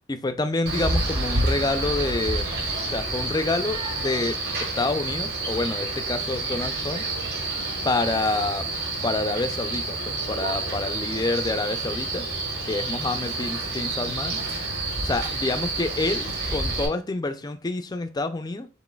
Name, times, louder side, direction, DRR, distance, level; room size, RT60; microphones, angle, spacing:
voice 1, 0.1-2.5 2.9-7.1 7.8-8.7 9.0-12.2 12.6-14.4 15.0-18.7, left 2 dB, 20° left, 0.3 m, -27 dB
Male speech man speaking, 0.7-16.9, right 2 dB, 50° right, 1.3 m, -29 dB
6.0 x 3.8 x 2.2 m
head